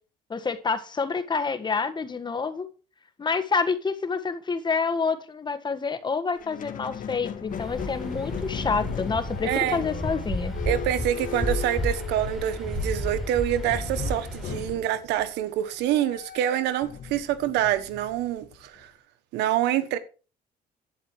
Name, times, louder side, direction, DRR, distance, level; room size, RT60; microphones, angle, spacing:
voice 1, 0.3-2.7 3.2-10.6, left 5 dB, 25° left, 1.6 m, -28 dB
Squeak, 6.3-12.7 13.6-18.8, left 8 dB, 50° left, 1.8 m, -38 dB
Waves surf, 7.5-14.8, left 1 dB, ahead, 5.8 m, -32 dB
voice 2, 9.4-9.8 10.7-18.9 19.3-20.0, right 12 dB, 90° right, 1.4 m, -26 dB
11.5 x 8.7 x 4.8 m
cardioid pair, 110°, 17 cm